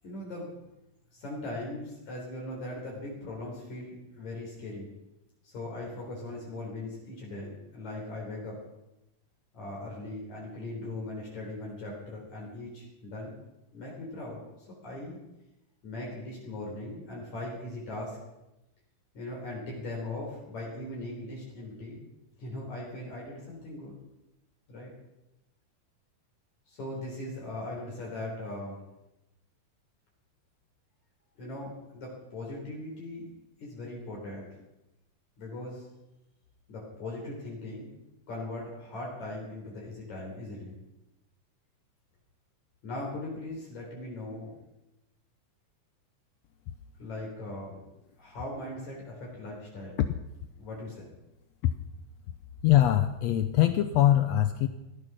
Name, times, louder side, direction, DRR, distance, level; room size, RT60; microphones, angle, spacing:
voice 1, 0.0-0.5 1.1-4.9 5.4-8.6 9.5-13.3 13.7-15.2 15.8-18.2 19.1-22.0 22.4-24.0 24.7-24.9 26.7-28.8 31.4-33.3 33.6-34.5 35.4-35.9 36.7-37.9 38.3-40.8 42.8-44.5 47.0-47.8 48.2-50.0 50.6-51.1, left 2 dB, 60° left, -3 dB, 5.0 m, -39 dB
voice 2, 52.6-54.7, left 12 dB, 80° left, 10 dB, 1.5 m, -22 dB
17.5 x 13.0 x 6.1 m, 0.93 s
omnidirectional pair, 3.8 m